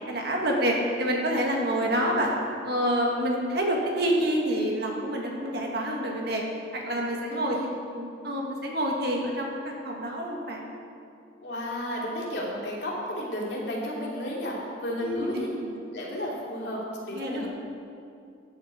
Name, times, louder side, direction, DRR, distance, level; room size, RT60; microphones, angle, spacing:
voice 1, 0.1-2.3 2.6-6.4 6.7-7.6 7.9-10.6 15.0-15.4 17.1-17.5, equal, 55° right, -1 dB, 1.8 m, -27 dB
voice 2, 1.5-2.2 7.3-7.7 11.4-15.6 15.9-17.5, equal, 60° left, -4 dB, 2.8 m, -33 dB
13.5 x 9.6 x 5.1 m, 2.5 s
head